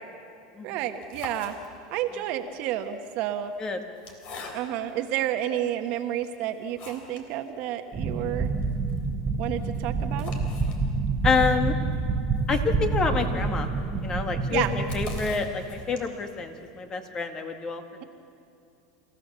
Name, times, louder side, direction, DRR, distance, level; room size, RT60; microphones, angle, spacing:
voice 1, 0.6-1.5 1.9-3.5 4.5-8.5 9.4-10.3 14.5-14.7, right 12 dB, 55° right, 7 dB, 1.4 m, -30 dB
sound 1, 0.8-2.1 2.9-5.0 5.6-5.7 6.2-7.3 7.6-7.7 8.0-8.1 8.4-16.3, left 4 dB, 45° left, 3.7 m, -45 dB
sound 2, 7.9-15.4, right 3 dB, 20° right, 1.8 m, -28 dB
voice 2, 11.2-11.7 12.5-13.7 14.0-17.8, left 4 dB, 25° left, 6 dB, 2.0 m, -27 dB
27.5 x 15.5 x 7.0 m, 2.6 s
supercardioid pair, 115°, 2 cm